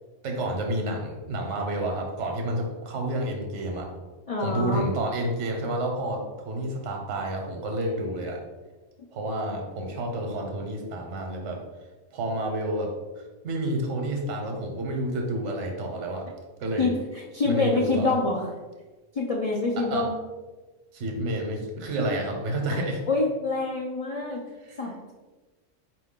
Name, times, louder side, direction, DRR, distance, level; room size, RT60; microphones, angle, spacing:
voice 1, 0.2-3.9 4.4-8.4 9.1-11.6 12.1-16.3 16.6-16.9 17.4-18.2 19.8-20.1 20.9-23.0 24.6-24.8, right 1 dB, 70° right, 2 dB, 1.1 m, -30 dB
voice 2, 4.3-4.8 9.0-9.1 16.8-16.9 17.3-18.5 19.1-20.1 23.1-24.4 24.8-25.1, left 3 dB, 65° left, -2 dB, 0.3 m, -26 dB
4.5 x 2.6 x 3.6 m, 1.2 s
omnidirectional pair, 1.3 m